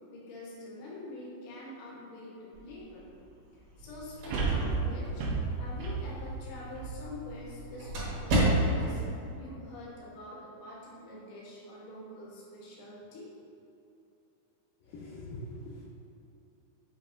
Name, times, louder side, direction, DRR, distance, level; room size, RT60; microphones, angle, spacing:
voice 1, 0.1-3.1 3.5-5.3 5.6-13.3, left 1 dB, 60° left, -6 dB, 1.9 m, -46 dB
sound 1, 2.6-2.7 4.3-7.6 8.1-8.2, right 4 dB, 80° right, 2.5 m, -32 dB
sound 2, 3.8-9.0, right 1 dB, 55° right, 2.5 m, -32 dB
voice 2, 14.9-15.8, left 1 dB, 75° left, -6 dB, 2.2 m, -42 dB
7.3 x 5.2 x 2.7 m, 2.7 s
omnidirectional pair, 4.5 m